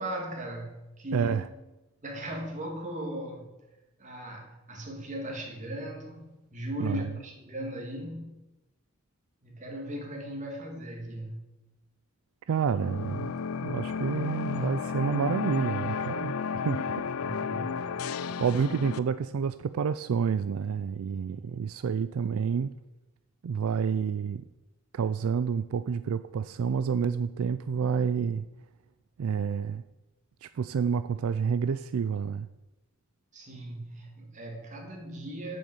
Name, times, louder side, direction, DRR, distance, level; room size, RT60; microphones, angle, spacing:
voice 1, 0.0-1.4 2.0-3.5 4.0-8.3 9.4-11.5 17.2-17.9 33.3-35.6, equal, 35° right, 1 dB, 2.1 m, -38 dB
voice 2, 1.1-1.5 6.8-7.1 12.5-17.1 18.0-22.7 23.4-24.5 24.9-28.5 29.2-29.8 30.4-32.5, right 6 dB, 80° right, 13 dB, 0.4 m, -29 dB
sound 1, 12.6-19.0, left 6 dB, 85° left, 0.5 m, -33 dB
8.2 x 6.2 x 7.8 m, 1.0 s
head